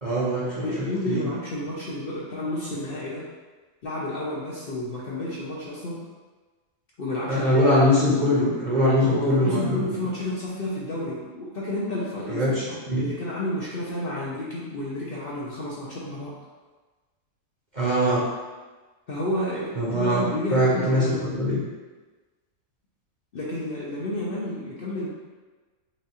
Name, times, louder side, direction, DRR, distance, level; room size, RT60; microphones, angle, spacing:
voice 1, 0.0-1.3 7.3-9.9 12.3-13.1 17.7-18.2 19.7-20.2 20.5-21.1 21.3-21.6, equal, 40° right, -7 dB, 0.9 m, -22 dB
voice 2, 0.6-3.3 3.8-6.1 7.0-7.6 9.0-16.4 19.1-21.3 23.3-25.1, left 1 dB, 50° left, -6 dB, 0.7 m, -31 dB
6.0 x 2.4 x 2.9 m, 1.3 s
omnidirectional pair, 1.5 m